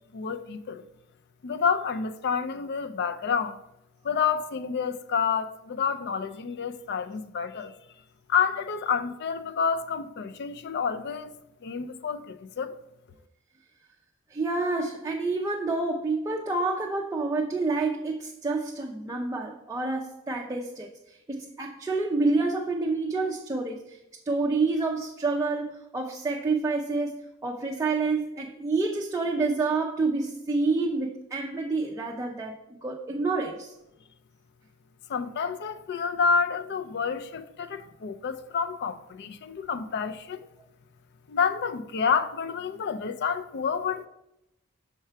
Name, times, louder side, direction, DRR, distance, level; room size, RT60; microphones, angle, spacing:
voice 1, 0.1-0.8 1.4-3.6 4.0-7.8 8.3-11.3 11.6-12.7 35.1-40.5 41.3-44.1, left 6 dB, 50° left, 0.4 m, -29 dB
voice 2, 14.3-24.0 24.3-33.7, right 3 dB, 15° right, 0.4 m, -28 dB
5.7 x 4.5 x 4.5 m
head